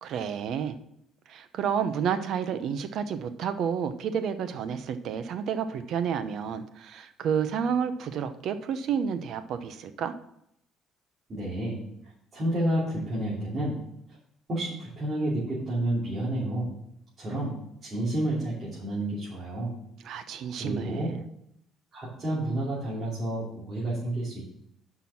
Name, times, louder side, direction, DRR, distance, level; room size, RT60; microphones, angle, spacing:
voice 1, 0.0-0.7 1.3-10.1 20.0-21.2, right 7 dB, 60° right, 10 dB, 0.8 m, -30 dB
voice 2, 11.3-11.8 12.3-13.8 14.5-16.7 17.2-17.6 17.8-19.8 20.5-21.1 21.9-24.5, right 1 dB, 30° right, -9 dB, 3.0 m, -30 dB
6.0 x 5.8 x 7.1 m, 0.75 s
cardioid pair, 135°, 0 cm